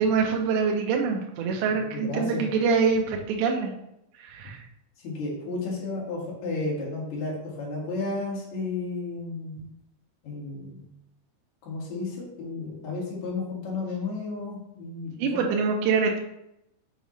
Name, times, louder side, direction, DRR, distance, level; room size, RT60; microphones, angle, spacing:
voice 1, 0.0-3.7 4.1-4.6 15.2-16.2, right 5 dB, 80° right, 1 dB, 2.8 m, -25 dB
voice 2, 1.7-2.4 5.0-9.6 10.2-10.9 11.6-15.4, left 3 dB, 50° left, -4 dB, 2.6 m, -33 dB
7.2 x 5.3 x 3.1 m, 0.82 s
omnidirectional pair, 5.5 m